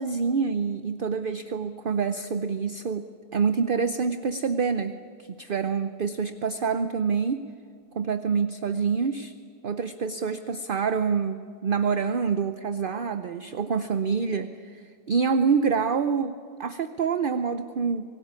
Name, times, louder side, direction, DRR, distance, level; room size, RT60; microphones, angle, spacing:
voice 1, 0.0-5.0 5.4-7.4 7.9-9.3 9.6-18.0, right 5 dB, 45° right, 10 dB, 0.8 m, -26 dB
24.5 x 19.0 x 9.7 m, 2.2 s
omnidirectional pair, 1.4 m